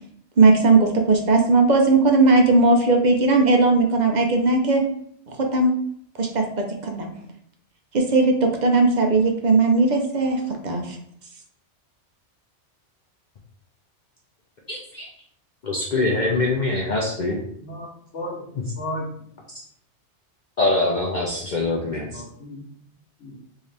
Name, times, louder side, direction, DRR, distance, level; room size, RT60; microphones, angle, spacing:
voice 1, 0.4-4.8 5.3-5.7 6.2-7.1 7.9-11.0, right 3 dB, 50° right, 3 dB, 0.6 m, -18 dB
voice 2, 14.7-15.1 15.6-17.4 18.5-18.6 20.6-22.2, left 2 dB, 50° left, -2 dB, 0.6 m, -23 dB
voice 3, 18.1-18.4 18.8-19.1 21.8-22.6 23.2-23.4, left 1 dB, 80° left, -6 dB, 1.2 m, -34 dB
3.7 x 2.7 x 3.3 m, 0.64 s
omnidirectional pair, 1.2 m